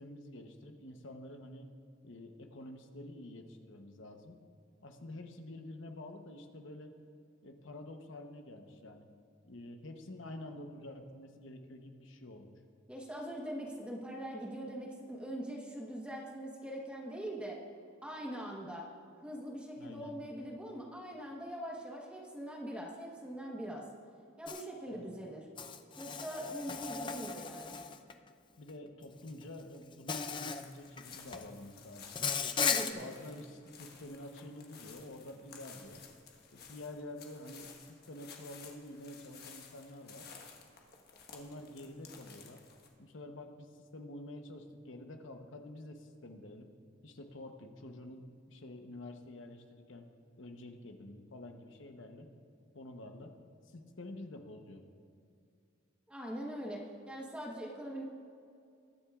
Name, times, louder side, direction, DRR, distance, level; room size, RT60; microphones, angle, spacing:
voice 1, 0.0-1.7 2.0-4.4 4.8-6.9 7.4-9.1 9.4-12.5 19.8-20.2 24.9-25.1 28.6-32.1 32.9-36.0 36.5-40.3 41.3-42.6 43.0-46.7 47.0-50.1 50.4-52.3 52.7-53.3 53.6-54.8, left 1 dB, 70° left, 5 dB, 1.0 m, -48 dB
voice 2, 12.9-17.6 18.0-18.9 19.2-23.9 24.4-25.5 26.0-27.8 32.6-33.1 56.1-58.0, equal, 5° right, -2 dB, 1.1 m, -42 dB
Insect, 24.5-24.6 25.6-28.1 29.3-29.4 30.1-30.6 31.0-31.5 32.2-32.9, left 6 dB, 25° left, 0.4 m, -36 dB
sound 1, 30.6-42.9, left 6 dB, 50° left, 1.3 m, -55 dB
21.5 x 9.9 x 2.4 m, 2.5 s
head